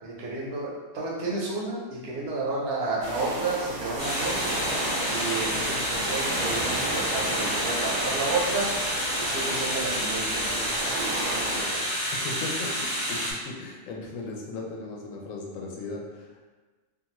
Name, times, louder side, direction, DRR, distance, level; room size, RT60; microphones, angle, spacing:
voice 1, 0.0-4.5 5.1-8.8 9.2-11.9, right 3 dB, 60° right, -3 dB, 0.8 m, -32 dB
sound 1, 3.0-11.6, right 1 dB, 85° right, 1.1 m, -32 dB
sound 2, 4.0-13.3, equal, 5° left, 0.8 m, -29 dB
voice 2, 12.1-16.5, left 3 dB, 85° left, -1 dB, 1.0 m, -37 dB
2.6 x 2.3 x 2.9 m, 1.3 s
omnidirectional pair, 1.3 m